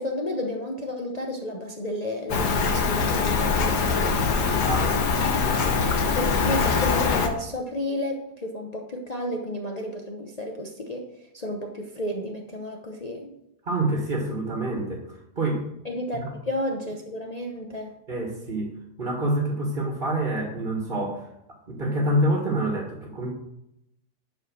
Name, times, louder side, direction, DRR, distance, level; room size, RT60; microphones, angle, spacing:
voice 1, 0.0-4.2 6.0-11.1 11.3-13.3 15.8-17.9, left 1 dB, 30° left, 1 dB, 0.8 m, -32 dB
Rain, 2.3-7.3, left 5 dB, 80° left, 1.7 m, -23 dB
voice 2, 4.6-5.0 5.5-5.8 13.7-15.7 18.1-18.7 19.0-21.3 21.7-23.3, right 1 dB, 30° right, 0 dB, 1.8 m, -27 dB
10.5 x 5.0 x 6.3 m, 0.82 s
omnidirectional pair, 1.7 m